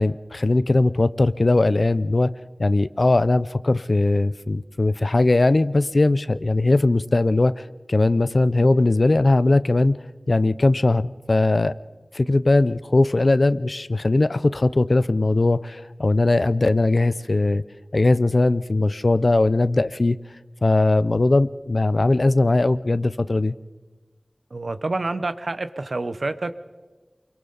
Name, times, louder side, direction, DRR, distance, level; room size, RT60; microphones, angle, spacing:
voice 1, 0.0-2.3 2.6-10.0 10.3-11.7 12.1-17.6 17.9-20.2 20.6-23.6, left 2 dB, 65° left, 16 dB, 0.5 m, -19 dB
voice 2, 24.5-26.6, right 2 dB, 80° right, 12 dB, 0.8 m, -28 dB
28.5 x 23.0 x 4.0 m, 1.3 s
wide cardioid pair, 45°, 0 cm